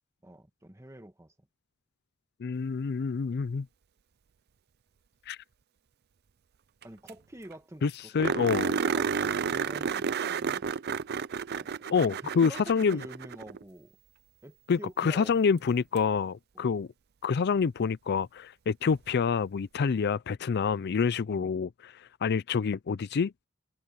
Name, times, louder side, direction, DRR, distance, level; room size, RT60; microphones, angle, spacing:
voice 1, 0.2-1.3 6.8-10.6 11.5-14.0 14.4-15.4 16.5-16.8 21.3-21.5, right 1 dB, 15° right, 1.5 m, -47 dB
voice 2, 2.4-3.7 5.3-5.4 7.8-8.7 11.9-13.0 14.7-16.9 17.2-23.5, left 5 dB, 50° left, 0.4 m, -27 dB
sound 1, 6.8-6.9 7.1-7.2 7.5-7.6 8.2-13.6 16.0-16.1 18.9-19.0, right 6 dB, 50° right, 0.5 m, -31 dB
head